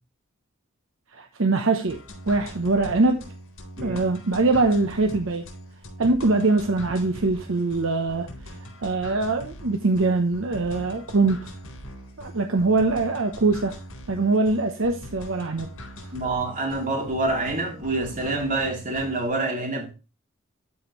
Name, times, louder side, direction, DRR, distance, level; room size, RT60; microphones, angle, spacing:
voice 1, 1.1-2.0 2.3-3.2 3.8-5.4 6.0-8.3 8.8-11.5 12.2-13.8 14.1-15.7, right 3 dB, 70° right, 0.8 m, -23 dB
sound 1, 1.9-19.3, equal, 85° left, 3.9 m, -41 dB
voice 2, 16.1-19.9, right 2 dB, 40° right, 2.9 m, -27 dB
12.5 x 5.1 x 3.1 m
head